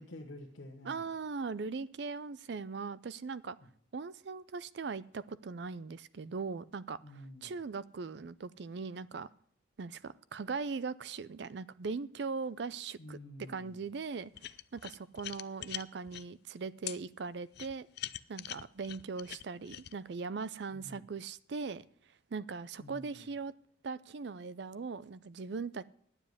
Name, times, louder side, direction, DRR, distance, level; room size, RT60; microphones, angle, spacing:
voice 1, 0.0-1.1 3.6-3.7 7.0-7.6 13.0-13.8 20.7-21.1 22.8-23.3, left 1 dB, 80° left, 1.2 m, -49 dB
voice 2, 0.8-3.6 3.9-7.0 7.4-9.3 9.8-13.2 13.5-17.9 18.3-21.9 22.3-23.5 23.8-25.9, right 4 dB, 60° right, 0.4 m, -40 dB
sound 1, 14.3-16.2 16.9-17.0 17.5-19.9, left 13 dB, 55° left, 0.4 m, -42 dB
9.9 x 7.2 x 9.3 m
head